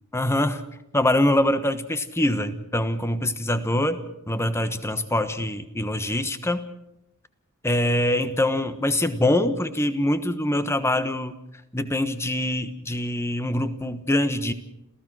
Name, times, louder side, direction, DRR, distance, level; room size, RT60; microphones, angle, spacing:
voice 1, 0.1-0.6 0.9-4.0 4.3-6.7 7.6-11.3 11.7-14.5, left 1 dB, 10° left, 11 dB, 1.1 m, -24 dB
27.5 x 15.5 x 6.2 m, 0.89 s
head